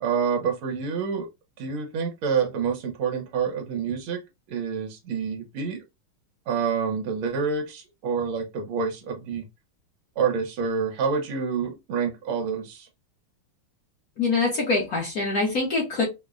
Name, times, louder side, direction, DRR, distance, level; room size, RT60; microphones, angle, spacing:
voice 1, 0.0-1.3 1.6-4.2 4.5-5.8 6.5-9.5 10.2-12.9, right 6 dB, 75° right, 1.7 m, -27 dB
voice 2, 14.2-16.0, left 3 dB, 55° left, 1.2 m, -24 dB
5.3 x 2.1 x 2.4 m
omnidirectional pair, 2.4 m